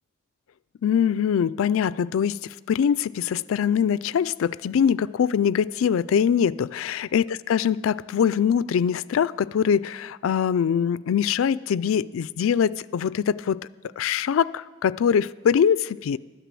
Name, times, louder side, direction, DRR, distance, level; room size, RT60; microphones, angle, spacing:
voice 1, 0.8-13.6 14.0-16.2, left 8 dB, 80° left, 19 dB, 0.3 m, -23 dB
12.5 x 10.0 x 7.5 m, 1.3 s
head